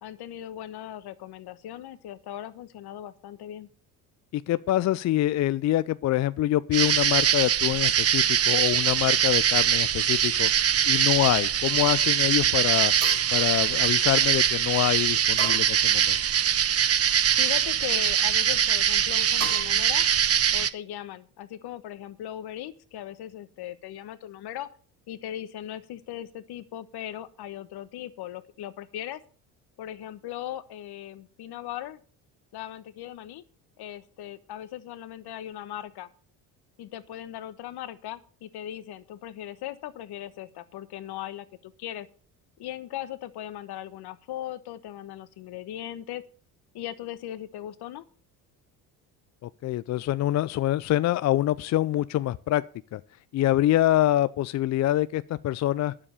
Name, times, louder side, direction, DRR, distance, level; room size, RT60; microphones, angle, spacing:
voice 1, 0.0-3.7 17.4-20.1 20.5-24.7 25.1-29.2 29.8-32.0 32.5-33.4 33.8-36.1 36.8-42.1 42.6-46.2 46.7-48.0, left 12 dB, 55° left, 1.2 m, -38 dB
voice 2, 4.3-10.5 10.9-12.9 13.3-16.2 49.4-52.6 52.9-53.0 53.3-55.9, left 14 dB, 40° left, 0.4 m, -25 dB
sound 1, 6.7-20.7, right 9 dB, 30° right, 0.8 m, -23 dB
sound 2, 11.7-12.2 13.0-14.4 15.4-16.5 17.0-17.7 19.4-19.6, right 5 dB, 90° right, 5.6 m, -39 dB
9.8 x 7.4 x 6.8 m
hypercardioid pair, 70°, 45 cm